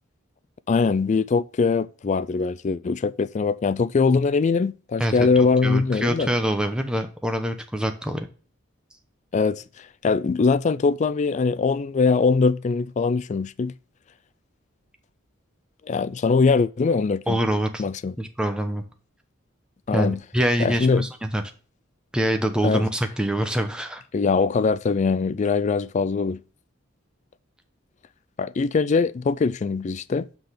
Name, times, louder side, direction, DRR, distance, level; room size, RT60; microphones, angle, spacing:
voice 1, 0.7-6.3 9.3-13.7 15.9-17.4 17.8-18.1 19.9-20.2 20.6-21.1 22.6-22.8 24.1-26.4 28.4-30.3, left 4 dB, 35° left, 0.3 m, -22 dB
voice 2, 5.0-8.3 17.3-17.8 18.2-18.8 19.9-21.4 22.1-24.0, right 1 dB, 5° right, 0.8 m, -25 dB
6.0 x 5.1 x 5.6 m
head